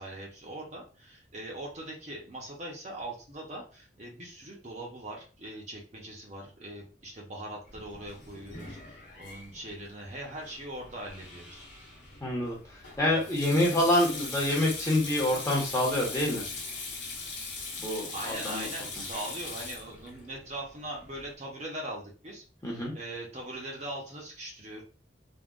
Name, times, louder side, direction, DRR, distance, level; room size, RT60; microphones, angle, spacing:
voice 1, 0.0-11.7 18.1-22.4 22.9-24.8, right 1 dB, 35° right, -1 dB, 0.7 m, -41 dB
Sink (filling or washing), 7.7-21.3, left 3 dB, 70° left, 1.0 m, -41 dB
voice 2, 12.2-16.4 17.8-18.7 22.6-22.9, left 1 dB, 15° left, -3 dB, 1.0 m, -27 dB
3.5 x 2.3 x 2.4 m, 0.36 s
head